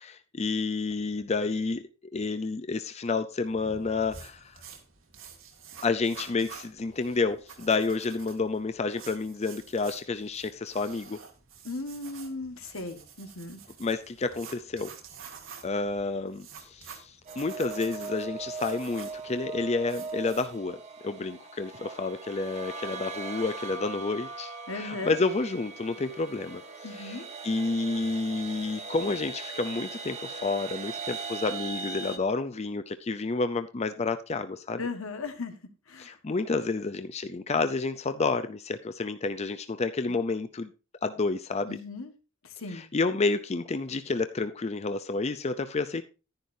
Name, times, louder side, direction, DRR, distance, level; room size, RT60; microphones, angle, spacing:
voice 1, 0.0-4.6 5.8-11.2 13.8-14.9 15.6-26.6 26.9-34.8 36.0-40.7 41.0-41.8 42.7-46.0, left 3 dB, 30° left, 0.5 m, -30 dB
sound 1, 3.4-20.6, right 6 dB, 75° right, 2.1 m, -49 dB
voice 2, 11.6-13.6 24.7-25.2 26.8-27.3 34.8-35.5 35.9-36.2 41.7-42.1 42.4-42.8, left 3 dB, 90° left, 1.5 m, -37 dB
sound 2, 17.3-32.2, right 4 dB, 35° right, 1.1 m, -39 dB
11.0 x 10.5 x 2.7 m
head